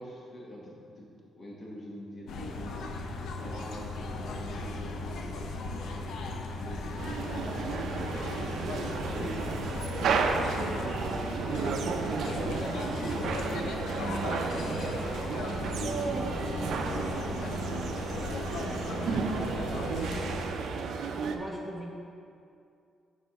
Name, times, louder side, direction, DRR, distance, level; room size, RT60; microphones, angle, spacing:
voice 1, 0.0-2.8 3.4-6.2 6.6-8.1 8.7-9.5 10.0-10.8 11.4-14.8 15.4-17.3 17.9-20.8, equal, 30° left, -2 dB, 1.3 m, -43 dB
sound 1, 2.3-20.5, left 2 dB, 65° left, 0.6 m, -37 dB
sound 2, 7.0-21.4, right 5 dB, 65° right, 0.5 m, -33 dB
voice 2, 21.1-21.9, right 1 dB, 20° right, 0 dB, 0.7 m, -40 dB
7.3 x 4.4 x 6.4 m, 2.5 s
cardioid pair, 160°, 0 cm